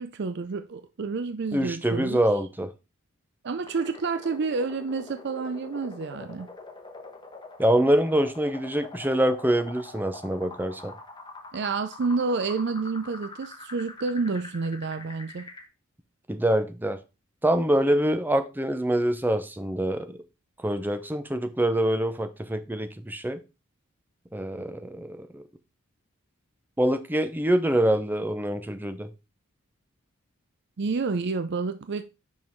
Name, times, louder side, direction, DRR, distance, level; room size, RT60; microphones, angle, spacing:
voice 1, 0.0-2.2 3.4-6.5 11.5-15.5 30.8-32.0, right 4 dB, 55° right, 0.5 m, -29 dB
voice 2, 1.5-2.7 7.6-10.9 16.3-17.0 17.4-20.2 20.6-23.4 24.3-25.4 26.8-29.1, right 1 dB, 10° right, 0.6 m, -25 dB
sound 1, 3.7-15.7, left 3 dB, 20° left, 1.1 m, -44 dB
5.5 x 5.3 x 4.5 m
head